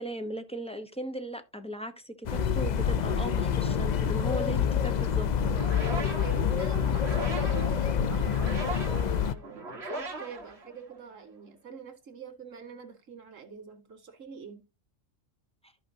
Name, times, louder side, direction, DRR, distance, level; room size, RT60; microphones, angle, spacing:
voice 1, 0.0-5.3, right 1 dB, 5° left, 0.6 m, -37 dB
sound 1, 2.3-9.3, left 7 dB, 55° left, 0.5 m, -27 dB
sound 2, 5.4-11.2, right 2 dB, 55° right, 1.9 m, -39 dB
voice 2, 6.2-14.6, right 7 dB, 85° right, 2.2 m, -44 dB
14.0 x 5.1 x 2.7 m
omnidirectional pair, 1.3 m